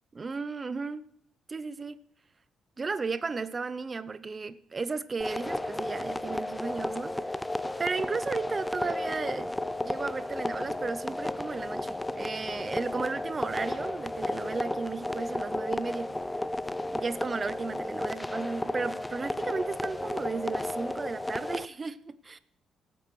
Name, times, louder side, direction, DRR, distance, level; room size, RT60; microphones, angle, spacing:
voice 1, 0.1-1.1 1.5-2.0 2.8-7.4 7.8-9.5 9.8-16.1 16.9-22.4, right 4 dB, 30° right, 0.6 m, -34 dB
sound 1, 5.2-21.7, left 1 dB, 10° left, 0.4 m, -33 dB
19.0 x 8.5 x 3.1 m
cardioid pair, 90°, 0 cm